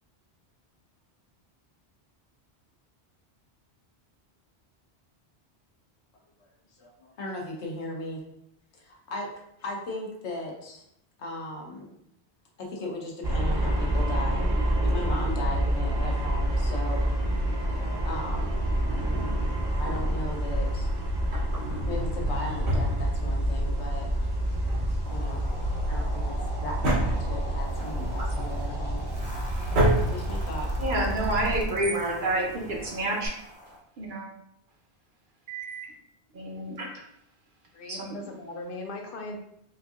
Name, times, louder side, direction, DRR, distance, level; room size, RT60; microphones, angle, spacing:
voice 1, 6.8-8.2 8.8-9.3 9.6-10.8 11.2-11.9 12.6-14.4 14.8-17.0 18.0-18.7 19.8-20.9 21.8-24.1 25.1-25.4 25.8-29.0 30.1-30.7, left 1 dB, 85° left, 0 dB, 1.1 m, -37 dB
sound 1, 13.2-31.6, right 1 dB, 30° right, 0.4 m, -28 dB
Drawer open or close, 18.8-20.4 21.2-23.7 23.9-24.0 24.5-33.3, right 1 dB, 75° right, 1.2 m, -32 dB
sound 2, 25.0-33.8, equal, 10° left, 0.6 m, -43 dB
voice 2, 30.8-33.3 34.0-34.3 35.5-35.9 36.3-37.0 37.9-38.2, right 2 dB, 55° right, -1 dB, 0.8 m, -29 dB
voice 3, 37.7-39.4, left 2 dB, 60° left, 1 dB, 0.7 m, -39 dB
4.4 x 2.6 x 2.4 m, 0.76 s
omnidirectional pair, 1.1 m